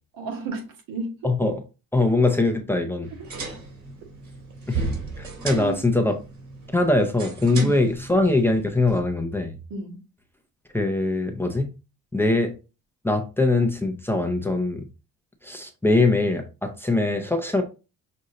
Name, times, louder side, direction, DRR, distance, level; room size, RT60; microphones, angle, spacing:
voice 1, 0.1-1.3 5.5-5.9 7.6-7.8 9.7-10.0, right 3 dB, 80° right, 1.7 m, -32 dB
voice 2, 1.2-1.6 1.9-3.1 4.7-4.9 5.2-6.2 6.7-9.6 10.7-11.7 12.1-12.5 13.0-14.9 15.4-17.6, left 2 dB, 5° left, 0.6 m, -22 dB
sound 1, 3.0-9.0, right 4 dB, 55° right, 2.6 m, -35 dB
6.3 x 2.6 x 2.8 m
cardioid pair, 120°, 35 cm